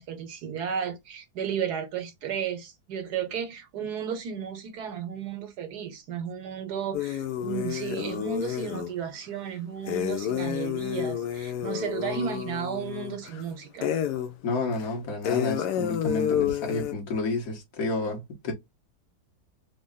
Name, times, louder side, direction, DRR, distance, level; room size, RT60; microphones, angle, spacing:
voice 1, 0.0-13.9, right 7 dB, 75° right, 1.4 m, -33 dB
sound 1, 6.9-8.9 9.8-13.4 13.8-14.3 14.7-14.8 15.2-16.9, left 10 dB, 85° left, 1.2 m, -30 dB
voice 2, 14.4-18.5, left 2 dB, 60° left, 1.7 m, -30 dB
3.8 x 2.1 x 3.7 m
omnidirectional pair, 1.8 m